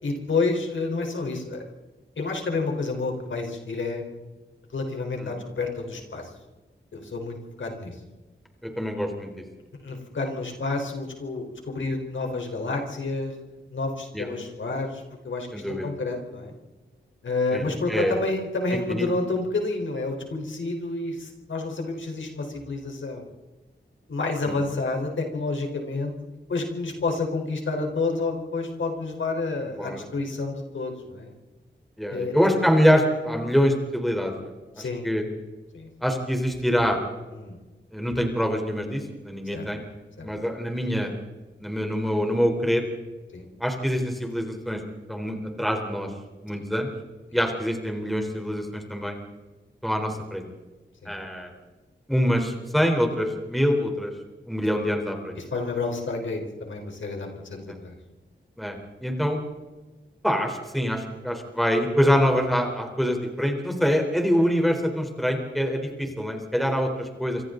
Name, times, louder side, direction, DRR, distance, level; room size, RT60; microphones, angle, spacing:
voice 1, 0.0-1.6 2.2-4.0 4.7-6.3 6.9-8.0 9.8-13.3 13.7-15.5 15.8-16.5 17.2-23.3 24.1-31.3 32.1-32.4 34.8-35.1 35.7-35.9 37.3-37.6 39.5-39.7 40.2-40.3 43.3-43.5 47.3-47.4 51.0-51.1 55.4-58.0 66.0-66.1, left 3 dB, 80° left, 2 dB, 4.3 m, -29 dB
voice 2, 8.6-9.3 14.1-14.3 15.5-15.9 17.5-18.2 18.9-19.1 24.5-24.6 29.8-30.1 32.0-34.5 34.8-35.2 36.0-37.0 37.9-39.8 40.2-41.1 41.6-42.8 43.6-44.8 45.1-46.1 46.4-46.9 47.3-49.2 49.8-50.5 51.1-51.5 52.1-54.1 54.5-55.4 57.7-57.8 58.6-59.4 60.2-67.4, equal, ahead, 3 dB, 3.9 m, -25 dB
27.5 x 25.5 x 4.0 m, 1.2 s
wide cardioid pair, 120°, 20 cm